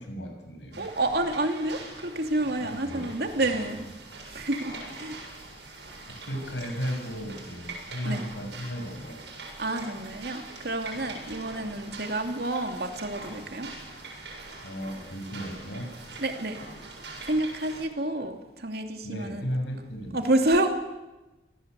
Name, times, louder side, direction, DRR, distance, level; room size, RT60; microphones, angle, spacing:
voice 1, 0.0-0.9 2.6-3.1 3.4-3.6 6.1-9.2 14.6-15.9 19.0-20.2, equal, 90° left, 4 dB, 6.9 m, -35 dB
sound 1, 0.7-17.8, right 3 dB, 80° right, 7.7 m, -43 dB
voice 2, 0.8-3.8 4.3-5.2 8.0-8.2 9.6-13.7 16.2-16.6 17.2-19.4 20.1-20.7, right 1 dB, 60° right, 5 dB, 2.7 m, -29 dB
26.5 x 18.5 x 8.3 m, 1.1 s
head